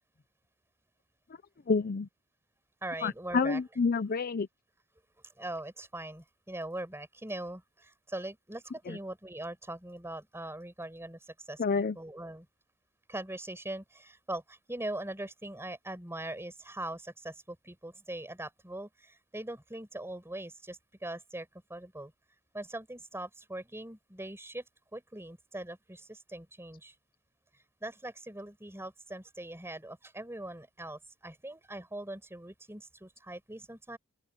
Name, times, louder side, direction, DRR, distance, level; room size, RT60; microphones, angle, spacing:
voice 1, 1.7-2.1 3.0-4.5 8.9-9.0 11.6-12.0, left 4 dB, 45° left, 0.5 m, -28 dB
voice 2, 2.8-3.6 5.4-11.6 12.0-12.5 13.1-22.1 22.5-24.7 24.9-27.0 27.5-34.0, right 1 dB, 10° right, 5.2 m, -41 dB
open air
head